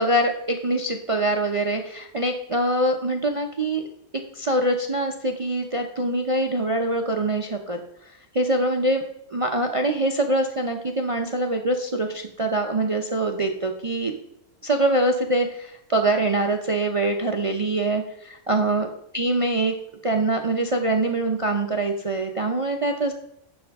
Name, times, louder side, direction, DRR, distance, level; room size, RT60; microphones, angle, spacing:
voice 1, 0.0-3.8 4.3-9.0 9.3-14.1 14.6-18.9 19.1-19.7 20.0-23.1, right 2 dB, 50° right, 4 dB, 0.3 m, -24 dB
10.5 x 6.1 x 3.5 m, 0.77 s
omnidirectional pair, 1.6 m